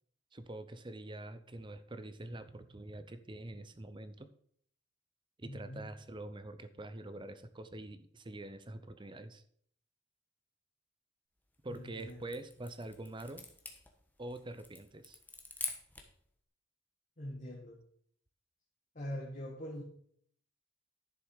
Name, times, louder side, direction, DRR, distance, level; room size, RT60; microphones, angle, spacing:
voice 1, 0.3-4.3 5.4-9.4 11.6-13.5 14.2-15.2, right 1 dB, 25° right, 11 dB, 0.6 m, -45 dB
voice 2, 5.4-5.9 11.7-12.3 17.2-17.8 18.9-19.8, left 1 dB, 40° left, -3 dB, 1.7 m, -43 dB
sound 1, 11.5-16.2, left 3 dB, 10° left, 1.2 m, -46 dB
11.0 x 6.7 x 4.8 m, 0.63 s
head